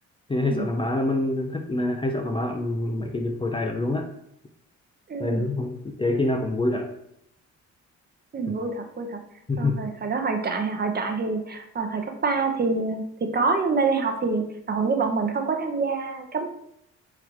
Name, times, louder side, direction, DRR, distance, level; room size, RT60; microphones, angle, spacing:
voice 1, 0.3-4.1 5.2-6.9 8.5-8.6 9.5-9.8, left 2 dB, 20° left, 4 dB, 0.5 m, -26 dB
voice 2, 5.1-5.4 8.3-9.2 9.6-16.5, right 4 dB, 30° right, 5 dB, 0.7 m, -26 dB
3.9 x 2.9 x 4.5 m, 0.75 s
cardioid pair, 90°, 30 cm